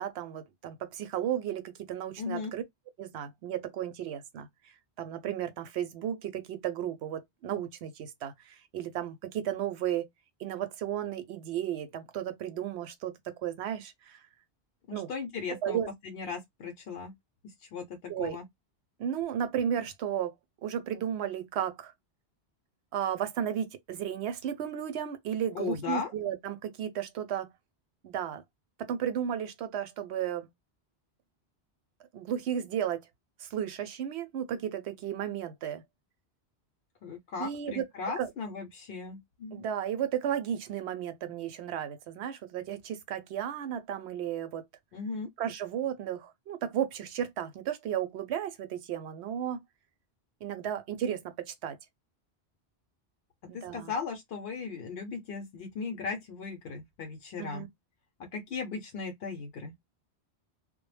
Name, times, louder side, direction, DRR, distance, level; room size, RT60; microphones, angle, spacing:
voice 1, 0.0-2.6 3.0-4.5 5.0-10.1 10.4-14.2 14.9-15.1 15.5-15.9 18.1-18.4 19.0-20.3 20.6-21.9 22.9-27.5 28.0-28.4 28.8-30.5 32.1-33.0 33.4-35.8 37.4-37.8 38.2-38.3 39.5-44.6 45.4-49.6 50.4-51.8 53.5-53.9 57.4-57.7, right 9 dB, 80° right, 0.8 m, -34 dB
voice 2, 2.2-2.5 14.9-15.8 16.0-17.1 17.7-18.4 25.5-26.1 37.0-39.6 44.9-45.3 53.5-57.7 58.3-59.7, left 5 dB, 65° left, 0.8 m, -37 dB
2.1 x 2.0 x 3.1 m
omnidirectional pair, 1.1 m